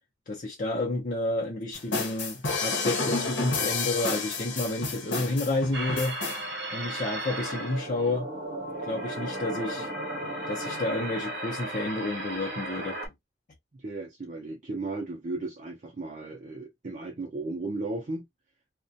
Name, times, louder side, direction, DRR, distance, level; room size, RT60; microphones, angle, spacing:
voice 1, 0.3-6.2 6.7-8.3 8.8-9.9 10.5-13.0, left 2 dB, 45° left, 0.5 m, -30 dB
sound 1, 1.7-6.4, left 3 dB, 80° left, 0.8 m, -30 dB
sound 2, 5.7-13.1, right 1 dB, 60° right, 0.9 m, -35 dB
voice 2, 13.7-18.2, right 2 dB, 40° right, 0.5 m, -35 dB
2.3 x 2.1 x 2.6 m
head